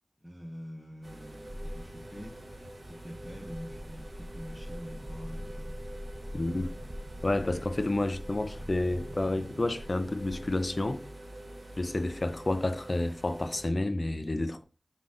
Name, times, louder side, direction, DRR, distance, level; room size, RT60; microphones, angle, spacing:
voice 1, 0.2-2.4 2.9-5.8 6.5-6.9, equal, 5° left, 0.8 m, -45 dB
sound 1, 1.0-13.7, right 1 dB, 60° right, 0.9 m, -46 dB
sound 2, 1.5-10.8, equal, 30° right, 0.4 m, -44 dB
voice 2, 6.3-6.7 7.2-11.0 11.8-14.6, left 2 dB, 50° left, 0.4 m, -30 dB
4.3 x 3.9 x 2.5 m
wide cardioid pair, 55°, 0 cm